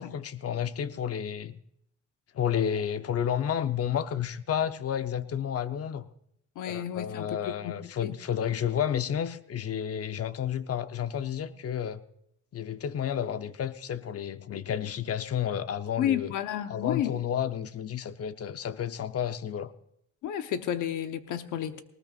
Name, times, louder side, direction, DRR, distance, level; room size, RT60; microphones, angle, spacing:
voice 1, 0.0-1.6 2.3-6.1 6.6-12.0 12.5-16.3 16.7-19.7, left 9 dB, 50° left, 0.8 m, -31 dB
voice 2, 6.6-8.1 16.0-17.2 20.2-21.8, left 10 dB, 85° left, 1.0 m, -31 dB
19.5 x 19.0 x 2.5 m
cardioid pair, 90°, 30 cm